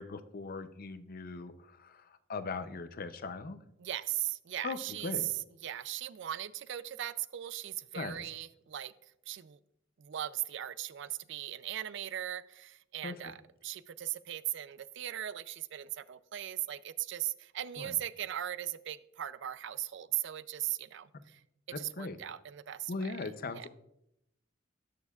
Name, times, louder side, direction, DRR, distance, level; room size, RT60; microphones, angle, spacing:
voice 1, 0.0-3.6 4.6-5.3 7.9-8.2 13.0-13.3 17.8-18.0 21.7-22.2 22.9-23.7, left 3 dB, 50° left, 11 dB, 0.6 m, -40 dB
voice 2, 3.8-5.3 5.6-8.9 9.3-9.6 10.0-13.4 13.6-21.4 21.8-23.1 23.5-23.7, right 12 dB, 65° right, 16 dB, 0.4 m, -38 dB
19.5 x 6.5 x 2.4 m, 0.82 s
head